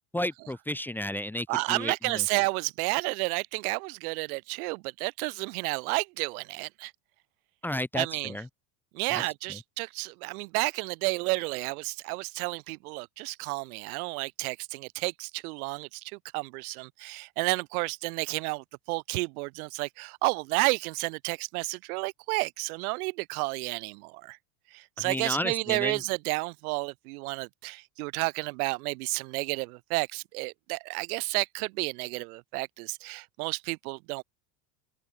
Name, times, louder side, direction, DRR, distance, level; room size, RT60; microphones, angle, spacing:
voice 1, 0.1-2.2 7.6-8.5 9.1-9.2 9.5-9.6 25.0-26.0, left 1 dB, 5° left, 1.0 m, -32 dB
voice 2, 1.5-6.9 7.9-8.3 8.9-24.4 24.7-34.2, right 26 dB, 75° right, 1.2 m, -31 dB
supercardioid pair, 155°, 45 cm